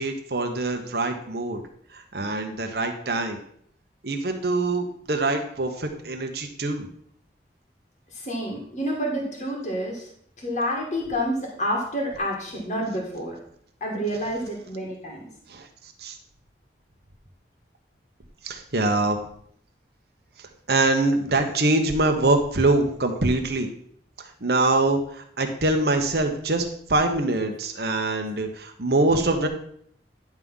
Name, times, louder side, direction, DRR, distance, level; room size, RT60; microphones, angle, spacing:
voice 1, 0.0-1.6 1.9-3.4 4.0-6.9 15.5-15.7 16.0-16.2 18.4-19.2 20.4-23.7 24.2-29.5, right 2 dB, 60° right, 4 dB, 1.1 m, -24 dB
voice 2, 8.1-10.1 10.4-13.4 13.8-15.3, equal, 40° left, -1 dB, 1.8 m, -29 dB
10.5 x 3.7 x 5.5 m, 0.64 s
head